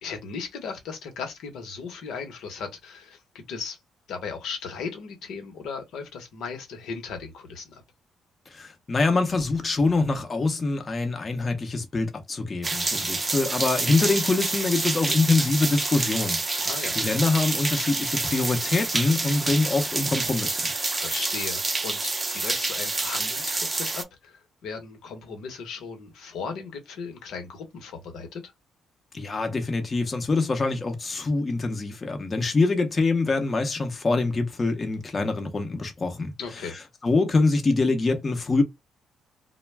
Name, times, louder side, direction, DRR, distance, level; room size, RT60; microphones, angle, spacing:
voice 1, 0.0-3.8 4.1-7.8 16.6-17.0 21.0-28.5 36.4-36.8, left 5 dB, 80° left, 1.0 m, -37 dB
voice 2, 8.5-16.4 17.0-20.7 29.1-36.3 37.0-38.6, left 3 dB, 30° left, 0.7 m, -24 dB
sound 1, 12.6-24.0, right 3 dB, 25° right, 0.5 m, -28 dB
2.2 x 2.2 x 3.2 m
cardioid pair, 90°, 0 cm